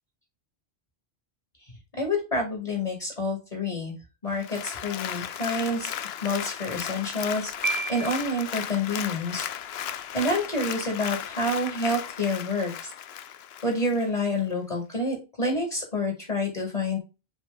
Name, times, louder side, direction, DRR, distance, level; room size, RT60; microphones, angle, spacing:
voice 1, 1.9-4.0 4.2-5.9 6.2-9.5 9.8-12.9 13.6-17.0, left 2 dB, 40° left, 0 dB, 2.4 m, -28 dB
Applause, 4.3-14.1 14.5-14.6, left 10 dB, 75° left, 0.8 m, -35 dB
Piano, 7.6-8.6, right 3 dB, 20° right, 0.9 m, -31 dB
7.3 x 3.5 x 3.8 m, 0.28 s
omnidirectional pair, 1.1 m